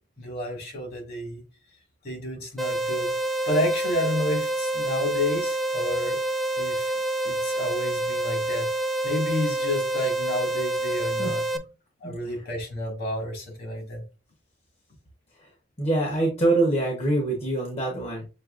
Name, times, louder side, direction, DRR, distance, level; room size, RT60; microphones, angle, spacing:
voice 1, 0.2-1.4 2.0-3.1 3.5-6.2 6.6-6.9 7.2-8.7 9.0-11.4 12.0-14.0, left 1 dB, 55° left, 2.0 m, -30 dB
sound 1, 2.6-11.6, right 2 dB, ahead, 0.4 m, -27 dB
voice 2, 11.2-11.6 12.0-12.5 15.4-15.5 15.8-18.2, right 2 dB, 35° left, 1.0 m, -25 dB
6.5 x 2.8 x 2.5 m
head